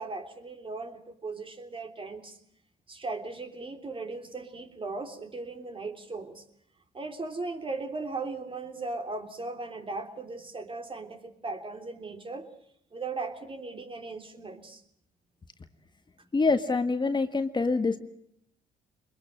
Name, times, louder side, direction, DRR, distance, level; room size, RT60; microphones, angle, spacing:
voice 1, 0.0-2.4 2.9-6.4 6.9-12.5 12.9-14.8 16.2-16.3, right 3 dB, 30° right, 6 dB, 3.3 m, -37 dB
voice 2, 16.3-18.0, left 3 dB, 25° left, 8 dB, 1.6 m, -25 dB
23.5 x 21.5 x 7.6 m, 0.72 s
supercardioid pair, 75°, 17 cm